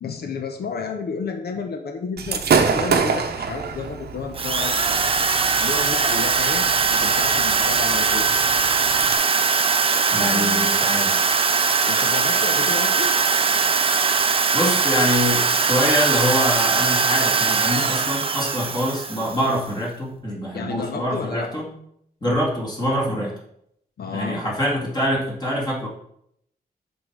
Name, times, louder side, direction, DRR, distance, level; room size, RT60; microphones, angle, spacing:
voice 1, 0.0-5.1 5.6-6.6 6.9-8.3 10.1-10.7 11.9-13.1 20.5-21.5 24.0-24.4, left 5 dB, 80° left, 5 dB, 0.8 m, -31 dB
Gunshot gunfire / Fireworks, 2.2-9.1, right 5 dB, 85° right, 0.8 m, -27 dB
Drill, 4.3-19.5, right 5 dB, 35° right, 0.5 m, -20 dB
voice 2, 10.1-11.1 14.5-21.7 22.2-23.3 24.1-25.9, equal, 25° left, -3 dB, 2.4 m, -24 dB
6.2 x 5.2 x 4.7 m, 0.71 s
wide cardioid pair, 140°, 16 cm